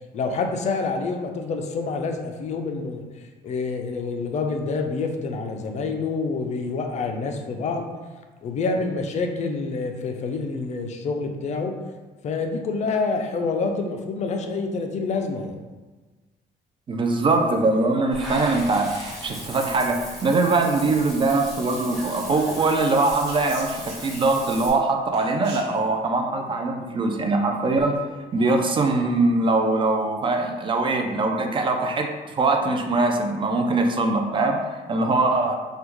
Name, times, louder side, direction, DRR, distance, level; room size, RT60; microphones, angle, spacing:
voice 1, 0.1-3.0 3.4-7.9 8.4-11.7 12.2-15.6, left 4 dB, 45° left, 4 dB, 0.4 m, -27 dB
voice 2, 16.9-28.0 28.3-35.5, right 3 dB, 30° right, 4 dB, 0.3 m, -22 dB
Water / Bathtub (filling or washing), 18.1-24.7, equal, ahead, 1.0 m, -38 dB
Whispering, 21.6-24.6 25.1-25.9, right 3 dB, 85° right, 0.7 m, -44 dB
3.5 x 2.2 x 3.0 m, 1.3 s
cardioid pair, 110°, 17 cm